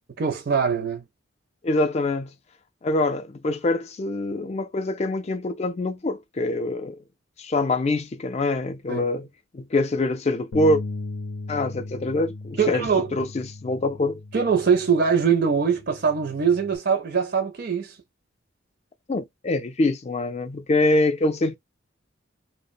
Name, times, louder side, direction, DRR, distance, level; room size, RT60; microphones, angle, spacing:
voice 1, 0.2-1.0 8.9-9.1 12.6-13.1 14.3-18.0, right 6 dB, 50° right, 0.4 m, -22 dB
voice 2, 1.6-2.3 2.8-7.0 7.4-9.3 9.5-10.8 11.5-14.2 19.1-21.5, left 2 dB, 35° left, 0.4 m, -24 dB
Bass guitar, 10.5-16.8, left 3 dB, 90° left, 0.6 m, -37 dB
2.8 x 2.0 x 2.5 m
head